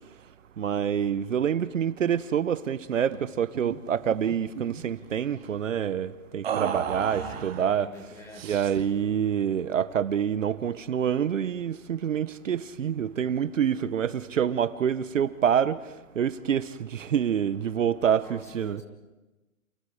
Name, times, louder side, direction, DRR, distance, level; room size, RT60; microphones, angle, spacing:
voice 1, 0.6-7.9 8.4-15.8 16.1-18.8, right 8 dB, 60° right, 1.1 m, -27 dB
sound 1, 3.1-3.3 3.5-3.8 4.1-4.9 6.4-7.7 8.3-8.9, right 8 dB, 45° right, 2.4 m, -34 dB
voice 2, 6.9-8.5 18.2-18.8, left 2 dB, 5° left, 1.6 m, -45 dB
29.5 x 28.5 x 4.9 m
hypercardioid pair, 160°, 42 cm